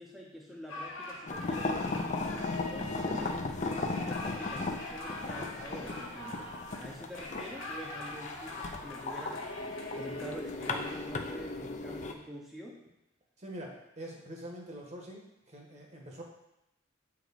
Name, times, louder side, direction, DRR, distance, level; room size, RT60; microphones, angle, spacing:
voice 1, 0.0-2.0 2.7-6.5 6.8-9.6 9.9-12.8, equal, ahead, -4 dB, 0.8 m, -46 dB
sound 1, 0.7-11.0, left 2 dB, 70° left, 1.5 m, -43 dB
sound 2, 1.3-12.1, left 3 dB, 35° left, 0.6 m, -36 dB
voice 2, 13.4-16.2, right 1 dB, 35° right, 0 dB, 1.3 m, -45 dB
7.8 x 4.6 x 4.1 m, 0.88 s
head